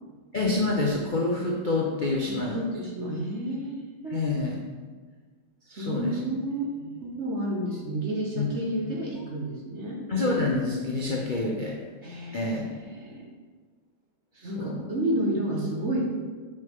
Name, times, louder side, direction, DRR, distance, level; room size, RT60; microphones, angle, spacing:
voice 1, 0.3-2.6 4.1-4.6 5.7-6.4 6.8-6.9 8.4-8.5 10.1-11.8 12.3-12.7 14.3-14.8, left 2 dB, 60° left, -2 dB, 0.5 m, -27 dB
voice 2, 2.2-4.2 5.7-6.6 7.0-10.0 12.0-12.6 12.9-13.3 14.4-16.0, right 1 dB, 45° right, -1 dB, 1.2 m, -31 dB
7.3 x 6.4 x 3.6 m, 1.4 s
omnidirectional pair, 2.1 m